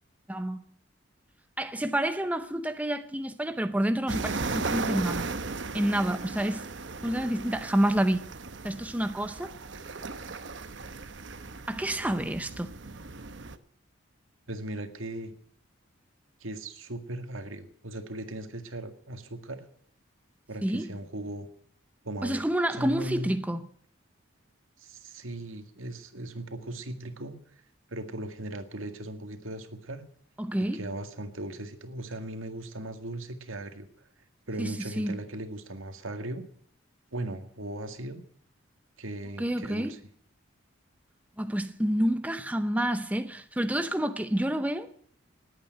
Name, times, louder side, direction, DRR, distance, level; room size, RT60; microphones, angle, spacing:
voice 1, 0.3-0.6 1.6-5.3 5.7-6.7 7.0-8.3 8.6-9.5 11.7-12.7 20.6-20.9 22.2-23.6 30.4-30.9 34.6-35.2 39.4-40.0 41.4-44.9, right 1 dB, 5° right, 0.6 m, -28 dB
sound 1, 4.1-13.6, right 3 dB, 65° right, 1.0 m, -36 dB
voice 2, 14.5-15.3 16.4-19.6 20.5-21.5 22.0-22.4 22.7-23.4 24.8-27.4 27.9-30.0 30.7-34.1 34.5-36.4 37.1-38.2 39.0-40.0, right 1 dB, 85° right, 2.0 m, -38 dB
19.5 x 8.9 x 7.7 m
head